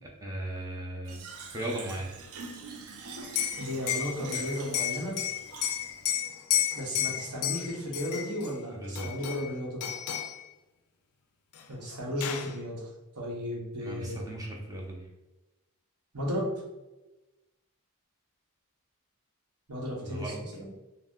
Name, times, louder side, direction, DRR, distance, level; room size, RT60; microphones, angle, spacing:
voice 1, 0.2-1.2 1.5-2.1 8.7-9.1 13.8-15.1 20.0-20.4, right 1 dB, 15° right, -2 dB, 0.5 m, -37 dB
Fill (with liquid), 1.1-6.1, right 3 dB, 70° right, 0.4 m, -44 dB
Liquid, 3.2-8.5 9.0-9.5 9.8-10.4 11.6-11.7 11.9-12.5, left 11 dB, 70° left, 0.3 m, -32 dB
voice 2, 3.6-5.2 6.7-9.8 11.7-12.9 13.1-14.1 16.1-16.5 19.7-20.7, equal, 90° right, -2 dB, 0.9 m, -34 dB
2.6 x 2.1 x 3.5 m, 1.1 s
head